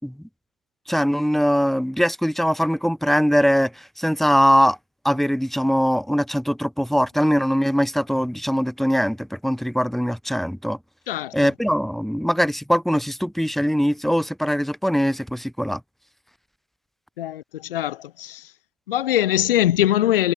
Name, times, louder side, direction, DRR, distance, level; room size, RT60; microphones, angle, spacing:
voice 1, 0.9-3.7 4.0-4.8 5.0-10.8 11.3-15.8, equal, ahead, 7.1 m, -21 dB
voice 2, 11.1-11.4 17.2-18.5 18.9-20.3, left 13 dB, 70° left, 6.6 m, -22 dB
figure-of-eight pair, 65°, 29 cm